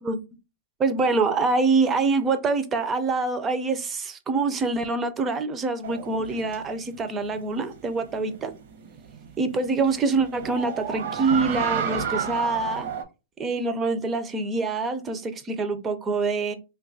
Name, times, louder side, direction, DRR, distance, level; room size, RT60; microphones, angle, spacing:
voice 1, 0.8-8.5 9.4-12.9 13.4-16.5, right 3 dB, 15° right, 0.4 m, -25 dB
sound 1, 5.8-13.0, right 6 dB, 65° right, 0.8 m, -32 dB
3.0 x 2.3 x 3.8 m
hypercardioid pair, 145°, 0 cm